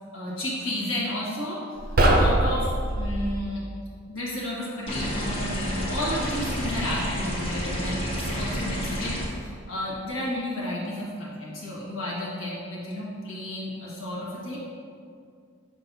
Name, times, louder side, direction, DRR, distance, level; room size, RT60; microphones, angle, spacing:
voice 1, 0.1-1.6 2.0-3.6 4.1-14.6, left 1 dB, 70° left, -6 dB, 1.4 m, -32 dB
sound 1, 1.8-3.4, right 1 dB, 45° right, 0.6 m, -22 dB
sound 2, 4.9-9.3, equal, 25° left, 1.2 m, -30 dB
6.7 x 5.9 x 2.7 m, 2.2 s
head